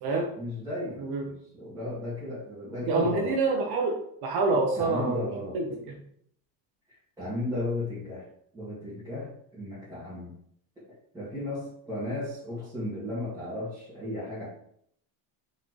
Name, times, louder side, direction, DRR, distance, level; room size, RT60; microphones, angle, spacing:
voice 1, 0.4-3.4 4.5-5.6 6.9-8.3 8.5-10.3 10.8-10.9 11.1-14.5, left 2 dB, 10° right, -13 dB, 1.9 m, -35 dB
voice 2, 2.9-5.6, right 3 dB, 55° right, 1 dB, 0.8 m, -27 dB
4.1 x 3.7 x 3.1 m, 0.68 s
cardioid pair, 160°, 44 cm